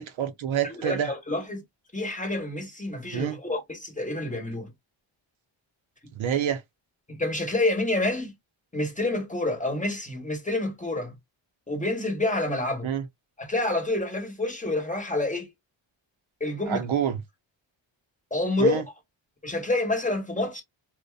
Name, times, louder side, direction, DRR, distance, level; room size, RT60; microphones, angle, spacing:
voice 1, 0.0-1.1 3.1-3.4 6.2-6.6 12.8-13.0 16.7-17.2 18.6-18.8, right 9 dB, 70° right, 0.6 m, -27 dB
voice 2, 0.8-1.6 1.9-4.7 7.1-8.3 8.7-11.1 11.7-12.9 13.4-15.5 16.4-16.8 18.3-18.8 19.4-20.6, left 2 dB, 15° left, 0.9 m, -28 dB
2.5 x 2.2 x 2.2 m
cardioid pair, 75°, 50 cm